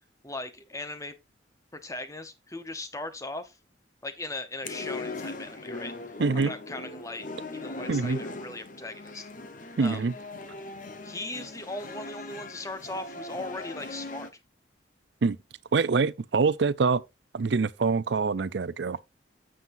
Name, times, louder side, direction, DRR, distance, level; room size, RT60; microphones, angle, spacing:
voice 1, 0.2-1.1 1.7-3.6 4.0-7.3 7.5-9.3 9.8-10.0 11.0-14.3, left 2 dB, 15° left, 0.9 m, -38 dB
ljubljana bytheriver, 4.6-14.3, left 2 dB, 45° left, 1.0 m, -39 dB
voice 2, 6.2-6.5 7.9-8.2 9.8-10.1 15.2-15.4 15.7-17.0 17.3-19.0, right 4 dB, 65° right, 0.5 m, -25 dB
9.3 x 7.6 x 2.6 m
head